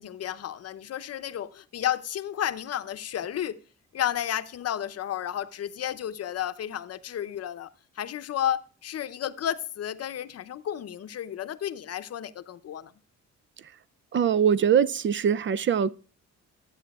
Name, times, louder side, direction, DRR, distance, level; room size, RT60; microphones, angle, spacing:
voice 1, 0.0-3.6 3.9-7.7 8.0-12.9, left 10 dB, 55° left, 0.7 m, -32 dB
voice 2, 14.1-15.9, right 8 dB, 40° right, 0.4 m, -22 dB
15.0 x 8.9 x 2.3 m
cardioid pair, 90°, 30 cm